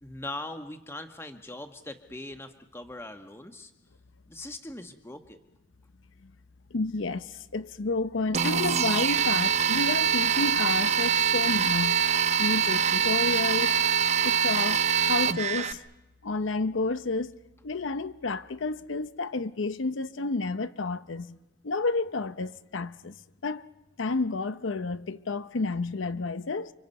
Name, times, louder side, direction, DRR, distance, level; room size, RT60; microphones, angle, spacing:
voice 1, 0.0-3.7 4.3-5.4, left 2 dB, 15° left, 1.2 m, -41 dB
voice 2, 6.7-12.1 12.4-13.8 14.2-15.9 16.2-17.4 17.6-21.4 21.6-23.2 23.4-23.7 24.0-26.7, left 3 dB, 85° left, 0.7 m, -30 dB
sound 1, 8.3-15.7, right 7 dB, 35° right, 0.7 m, -24 dB
30.0 x 25.0 x 5.4 m
head